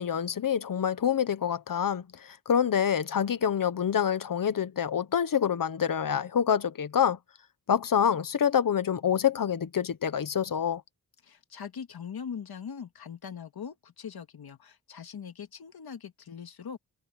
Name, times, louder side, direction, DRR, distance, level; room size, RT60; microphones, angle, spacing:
voice 1, 0.0-7.2 7.7-10.8, left 8 dB, 60° left, 1.1 m, -26 dB
voice 2, 11.2-16.8, left 7 dB, 80° left, 2.3 m, -41 dB
wide cardioid pair, 175°, 37 cm